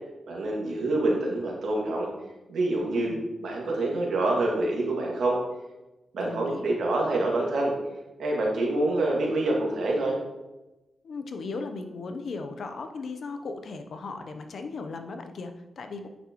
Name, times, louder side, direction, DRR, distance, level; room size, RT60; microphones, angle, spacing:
voice 1, 0.3-2.1 2.5-3.2 3.4-5.4 6.1-7.7 8.2-10.2, right 2 dB, 90° right, -2 dB, 2.1 m, -26 dB
voice 2, 2.9-3.2 6.2-6.7 11.0-16.1, left 4 dB, 70° left, 7 dB, 0.8 m, -37 dB
9.1 x 6.2 x 3.1 m, 1.0 s
cardioid pair, 85°, 0 cm